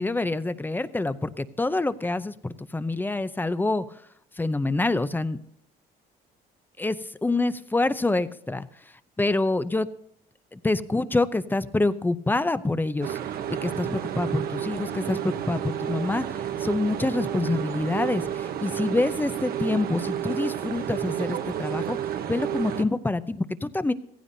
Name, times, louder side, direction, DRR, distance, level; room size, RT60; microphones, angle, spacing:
voice 1, 0.0-3.9 4.4-5.4 6.8-8.7 9.2-9.9 10.5-13.2 13.5-22.0 22.3-23.9, left 2 dB, 10° left, 13 dB, 0.6 m, -26 dB
sound 1, 13.0-22.8, right 10 dB, 60° right, 1.0 m, -31 dB
16.0 x 15.0 x 2.7 m, 0.70 s
cardioid pair, 110°, 17 cm